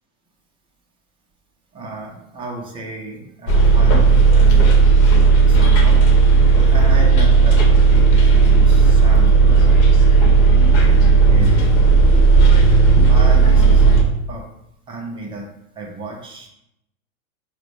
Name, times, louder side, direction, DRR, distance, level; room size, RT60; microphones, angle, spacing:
voice 1, 1.7-4.0 4.3-5.0 5.3-6.0 6.5-9.9 10.8-11.9 13.1-13.8 14.3-14.4 14.9-15.5 15.8-16.5, right 2 dB, 10° right, 0 dB, 0.5 m, -33 dB
Bus, 3.5-14.0, right 4 dB, 50° left, 0.9 m, -12 dB
4.1 x 2.1 x 3.0 m, 0.78 s
hypercardioid pair, 100°, 44 cm